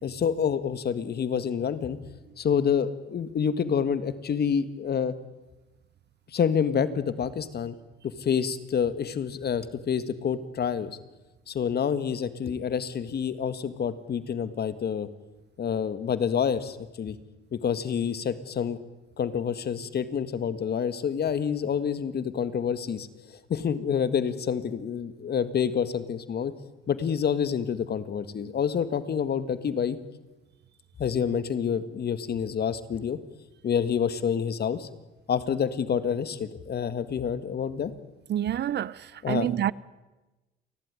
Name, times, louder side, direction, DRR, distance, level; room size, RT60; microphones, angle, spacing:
voice 1, 0.0-2.0 2.4-5.1 6.3-7.8 8.0-11.0 11.5-15.1 15.6-17.2 17.5-18.8 19.2-26.5 26.9-30.0 31.0-33.2 33.6-34.9 35.3-37.9 39.2-39.5, left 7 dB, 55° left, 1.7 m, -28 dB
voice 2, 38.3-39.7, right 11 dB, 60° right, 0.7 m, -28 dB
29.5 x 12.0 x 10.0 m
cardioid pair, 90°, 20 cm